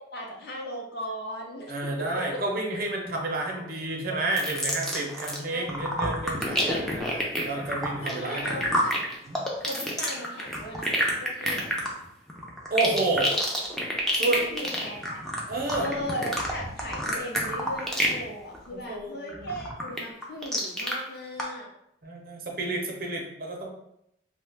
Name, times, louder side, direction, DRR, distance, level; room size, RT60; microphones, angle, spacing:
voice 1, 0.1-2.4 4.1-4.2 5.5-5.8 8.0-9.2 9.6-11.7 14.3-15.2 15.8-21.7, equal, 55° left, -1 dB, 0.6 m, -37 dB
voice 2, 1.7-8.8 9.3-9.4 12.7-13.4 14.1-14.4 15.5-15.9 18.7-19.5 22.0-23.7, right 2 dB, 50° right, 1 dB, 0.6 m, -30 dB
sound 1, 4.3-5.4 5.7-18.2 18.5-18.9 19.3-20.9 21.4-21.5, equal, 5° left, 0.4 m, -28 dB
2.8 x 2.2 x 3.3 m, 0.77 s
head